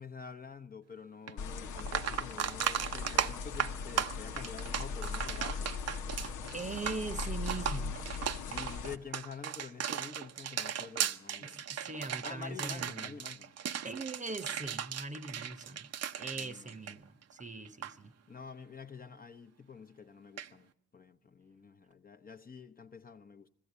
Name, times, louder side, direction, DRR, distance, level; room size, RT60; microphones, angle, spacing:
voice 1, 0.0-5.8 8.4-11.6 12.2-13.5 16.3-16.8 18.3-23.5, left 5 dB, 30° left, 0.9 m, -48 dB
sound 1, 1.3-1.4 1.8-17.4 17.6-17.9 20.4-20.5, right 9 dB, 55° right, 0.8 m, -36 dB
sound 2, 1.4-9.0, left 5 dB, 80° left, 1.1 m, -39 dB
voice 2, 6.5-8.0 11.4-13.2 13.8-15.9 16.2-18.1, right 3 dB, 25° right, 1.0 m, -41 dB
20.5 x 15.5 x 8.2 m
cardioid pair, 90°, 30 cm